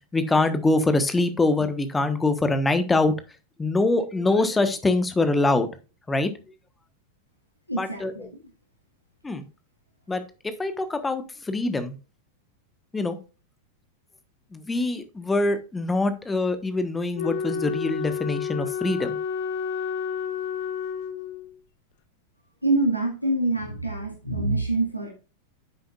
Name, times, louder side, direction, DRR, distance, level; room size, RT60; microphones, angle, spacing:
voice 1, 0.1-3.1 3.6-5.7 6.1-6.3 7.8-8.1 9.2-9.4 10.1-11.9 12.9-13.2 14.5-19.2, left 2 dB, 10° left, 10 dB, 1.2 m, -24 dB
voice 2, 7.7-8.3 22.6-25.1, right 2 dB, 90° left, 0 dB, 1.9 m, -25 dB
Wind instrument woodwind instrument, 17.1-21.6, left 6 dB, 50° left, 1.3 m, -30 dB
10.0 x 7.7 x 2.4 m, 0.32 s
figure-of-eight pair, 90°, 0 cm